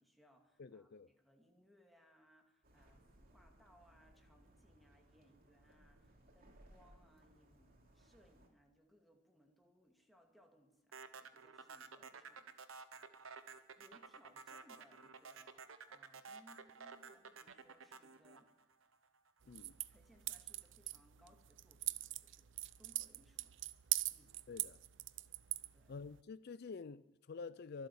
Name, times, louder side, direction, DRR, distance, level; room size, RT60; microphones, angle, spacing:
voice 1, 0.0-12.9 13.8-18.5 19.6-23.5 24.1-24.3 25.7-26.0, equal, ahead, 2.4 m, -69 dB
voice 2, 0.6-1.1 19.5-19.8 24.5-24.8 25.9-27.9, left 4 dB, 55° left, 0.4 m, -49 dB
sound 1, 2.6-8.5, right 1 dB, 50° right, 2.9 m, -65 dB
sound 2, 10.9-19.3, right 5 dB, 90° right, 1.1 m, -53 dB
sound 3, 19.4-26.2, right 16 dB, 65° right, 0.6 m, -43 dB
23.5 x 8.0 x 7.2 m
head